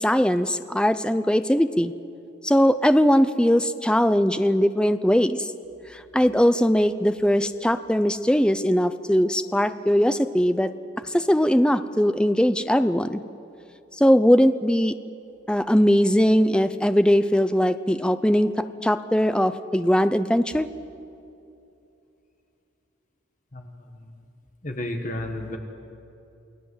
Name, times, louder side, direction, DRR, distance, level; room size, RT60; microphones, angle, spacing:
voice 1, 0.0-1.9 2.4-5.5 5.9-10.7 11.1-13.2 14.0-14.9 15.5-18.5 18.8-20.7, equal, 5° left, 11 dB, 0.5 m, -20 dB
voice 2, 23.5-24.2 24.6-25.6, left 1 dB, 35° left, 4 dB, 1.7 m, -33 dB
28.5 x 19.0 x 8.0 m, 2.7 s
head